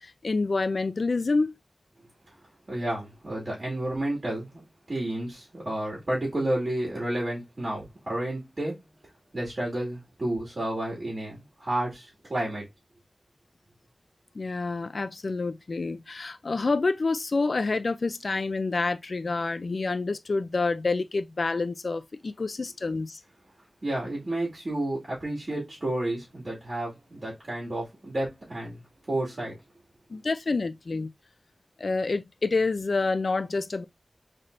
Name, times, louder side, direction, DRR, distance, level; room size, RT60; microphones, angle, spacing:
voice 1, 0.0-1.6 14.3-23.2 30.1-31.1 31.8-33.8, left 3 dB, 65° left, 0.4 m, -28 dB
voice 2, 2.7-4.6 4.9-8.8 9.3-12.6 23.8-29.6, right 1 dB, 45° right, 2.3 m, -31 dB
5.6 x 3.2 x 2.6 m
wide cardioid pair, 75°, 0 cm